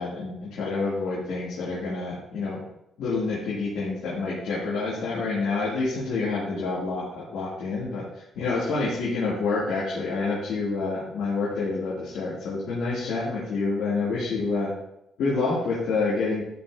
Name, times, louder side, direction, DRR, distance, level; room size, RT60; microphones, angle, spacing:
voice 1, 0.0-2.6 3.0-14.7 15.2-16.4, left 3 dB, 80° left, -8 dB, 2.6 m, -28 dB
12.0 x 5.6 x 2.8 m, 0.81 s
cardioid pair, 90°, 0 cm